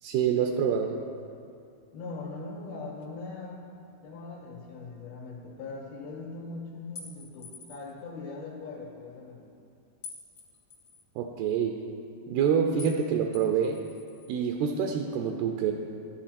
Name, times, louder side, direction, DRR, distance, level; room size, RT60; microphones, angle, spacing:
voice 1, 0.0-1.0 11.2-11.8 12.3-13.8 14.3-15.7, right 7 dB, 80° right, 3 dB, 2.6 m, -26 dB
voice 2, 1.9-3.7 4.0-9.4, left 3 dB, 65° left, -4 dB, 3.3 m, -40 dB
sound 1, 7.0-7.9 10.0-11.0 12.8-13.0 13.3-14.3, left 4 dB, 50° left, 1.4 m, -46 dB
14.5 x 11.0 x 4.2 m, 2.5 s
omnidirectional pair, 4.9 m